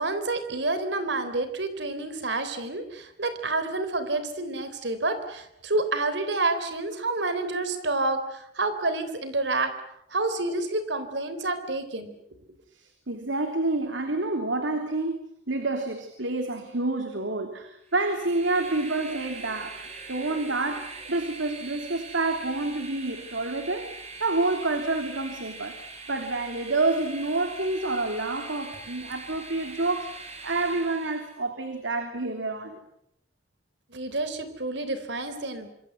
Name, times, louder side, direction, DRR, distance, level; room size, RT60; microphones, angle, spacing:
voice 1, 0.0-9.7 10.1-12.1 33.9-35.7, right 2 dB, 70° right, 11 dB, 3.7 m, -29 dB
voice 2, 12.7-15.2 15.5-19.8 20.1-25.8 26.1-32.8, right 2 dB, 90° right, 5 dB, 3.3 m, -28 dB
Train, 17.9-31.4, right 3 dB, 35° right, 5.8 m, -42 dB
27.0 x 25.5 x 8.0 m, 0.76 s
head